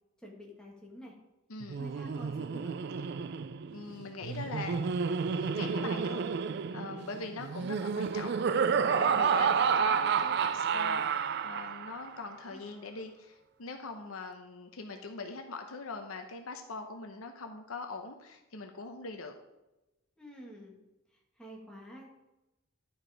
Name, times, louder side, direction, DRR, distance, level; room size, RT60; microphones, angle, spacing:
voice 1, 0.2-1.1 1.8-2.8 12.5-12.7 20.2-20.8 21.4-22.1, equal, 5° left, -3 dB, 1.7 m, -48 dB
voice 2, 1.5-1.8 3.7-4.9 5.3-6.3 6.7-8.4 8.8-11.0 11.4-19.4, left 3 dB, 80° left, 5 dB, 0.8 m, -42 dB
Laughter, 1.6-12.1, right 6 dB, 50° right, 0.3 m, -30 dB
Percussion, 8.8-13.8, right 4 dB, 70° right, 3.0 m, -54 dB
11.0 x 4.8 x 5.0 m, 0.99 s
head